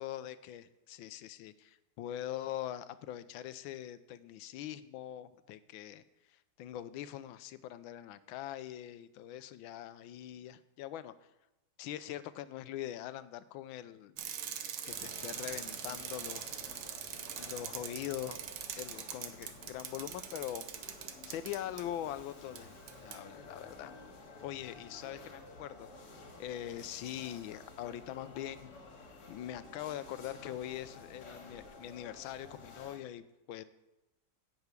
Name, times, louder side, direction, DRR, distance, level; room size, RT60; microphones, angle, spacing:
voice 1, 0.0-6.0 6.6-11.1 11.8-14.2 14.8-16.5 17.4-18.4 18.8-20.6 21.1-22.8 23.0-23.9 24.4-25.9 26.4-28.7 29.3-33.6, left 12 dB, 80° left, 14 dB, 1.4 m, -42 dB
Bicycle, 14.2-21.8 22.6-22.7 22.9-23.2, right 9 dB, 90° right, 1.7 m, -42 dB
sound 1, 14.9-33.0, left 3 dB, 55° left, 2.2 m, -52 dB
10.5 x 5.9 x 8.2 m, 0.97 s
omnidirectional pair, 2.2 m